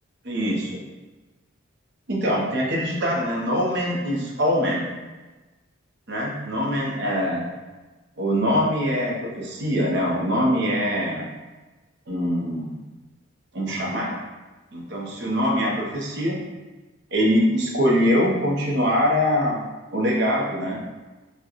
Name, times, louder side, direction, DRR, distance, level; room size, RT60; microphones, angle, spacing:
voice 1, 0.2-0.8 2.1-4.9 6.1-7.5 8.2-11.3 12.1-12.8 13.5-14.2 14.7-16.4 17.1-19.6 19.9-20.8, equal, 50° right, -2 dB, 0.7 m, -23 dB
4.6 x 2.2 x 2.9 m, 1.2 s
head